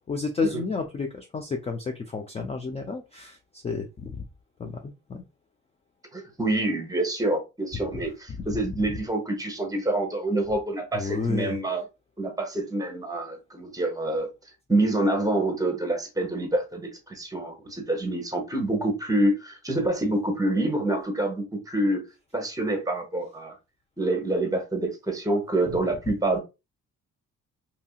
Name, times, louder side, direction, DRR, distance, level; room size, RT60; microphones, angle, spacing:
voice 1, 0.0-4.2 4.6-5.2 10.9-11.6, left 4 dB, 20° left, 0.4 m, -31 dB
voice 2, 6.1-11.8 12.2-14.3 14.7-22.0 22.3-23.5 24.0-26.4, right 1 dB, 10° right, 1.0 m, -27 dB
2.8 x 2.6 x 2.3 m
cardioid pair, 90°, 30 cm